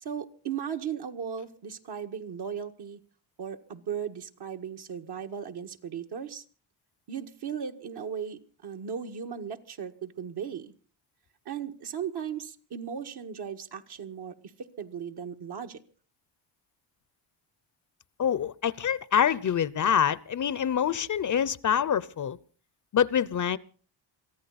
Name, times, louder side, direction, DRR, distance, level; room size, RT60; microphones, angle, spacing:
voice 1, 0.0-3.0 3.4-6.4 7.1-10.7 11.5-15.8, right 8 dB, 60° right, 1.8 m, -37 dB
voice 2, 18.2-22.4 22.9-23.6, left 8 dB, 40° left, 0.7 m, -26 dB
23.5 x 15.0 x 4.1 m
cardioid pair, 85°, 46 cm